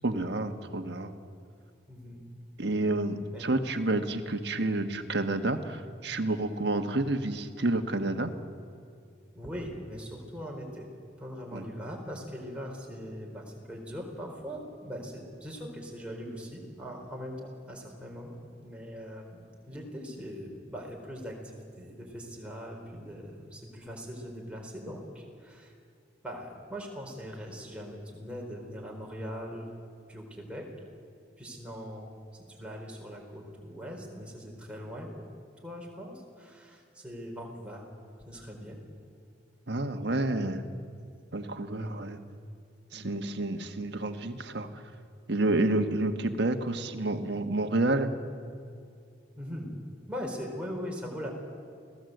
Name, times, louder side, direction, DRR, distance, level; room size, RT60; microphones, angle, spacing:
voice 1, 0.0-1.1 2.6-8.3 11.5-11.6 39.7-40.6 41.3-42.2 42.9-44.7 45.3-48.1, right 2 dB, 65° right, 6 dB, 1.5 m, -29 dB
voice 2, 1.9-2.3 3.2-3.7 9.3-10.9 11.2-18.4 18.6-25.7 26.2-29.7 30.1-30.7 31.4-35.2 35.6-37.9 38.2-38.8 41.8-42.0 42.9-43.2 49.4-49.7 50.1-51.3, equal, 5° right, -1 dB, 4.3 m, -41 dB
29.0 x 17.5 x 8.0 m, 2.4 s
head